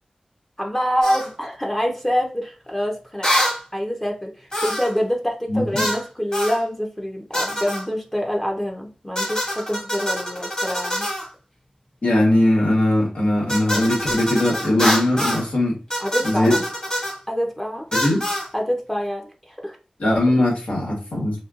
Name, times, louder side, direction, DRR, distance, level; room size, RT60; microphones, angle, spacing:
voice 1, 0.6-3.3 3.7-11.1 16.0-16.6 17.3-17.9 18.5-19.8, equal, 15° left, 1 dB, 0.6 m, -26 dB
sound 1, 1.0-1.3 3.2-3.6 4.5-5.0 5.7-6.0 6.3-6.6 7.3-7.8 9.1-11.3 13.5-15.5 15.9-17.2 17.9-18.5, equal, 35° left, 1.8 m, -25 dB
voice 2, 5.5-5.9 12.0-15.7 16.2-16.6 17.9-18.2 20.0-21.4, left 1 dB, 90° left, -2 dB, 1.4 m, -20 dB
4.3 x 2.2 x 2.4 m, 0.34 s
wide cardioid pair, 75°, 2 cm